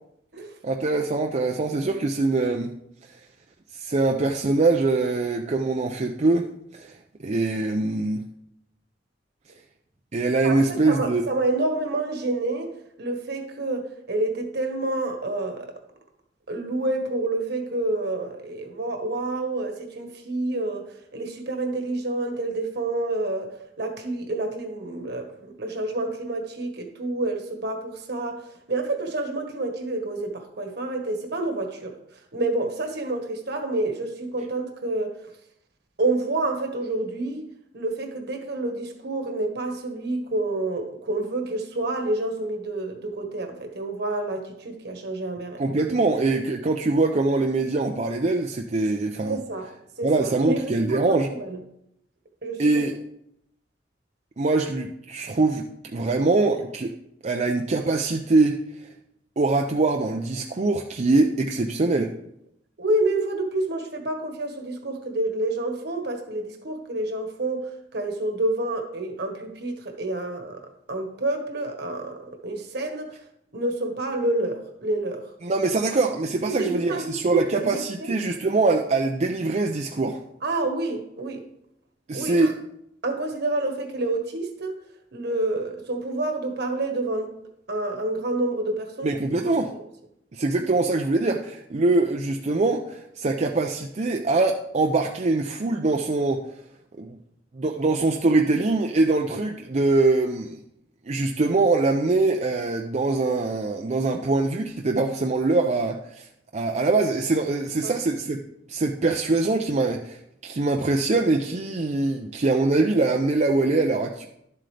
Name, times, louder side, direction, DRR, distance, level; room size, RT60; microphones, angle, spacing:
voice 1, 0.6-2.7 3.7-6.5 6.7-8.2 10.1-11.2 45.6-49.4 50.0-51.3 52.6-53.0 54.4-55.7 55.9-56.9 57.2-58.6 59.4-62.1 75.4-80.2 82.1-82.6 89.0-89.7 90.3-96.4 97.0-97.2 97.5-100.6 101.1-106.3 106.5-108.4 108.7-114.3, right 3 dB, 40° right, 3 dB, 0.5 m, -23 dB
voice 2, 10.4-12.7 13.0-15.7 16.5-23.5 23.8-28.4 28.7-32.0 32.3-35.1 36.0-37.5 37.7-45.6 49.3-49.7 50.0-51.6 52.4-52.6 62.8-70.6 70.9-73.1 73.5-75.3 76.4-78.1 80.4-81.4 82.1-82.5 83.0-84.7 85.1-87.3 87.7-89.1 89.4-89.8 107.8-107.9, right 2 dB, 65° right, 4 dB, 1.5 m, -28 dB
11.5 x 7.7 x 3.3 m, 0.77 s
head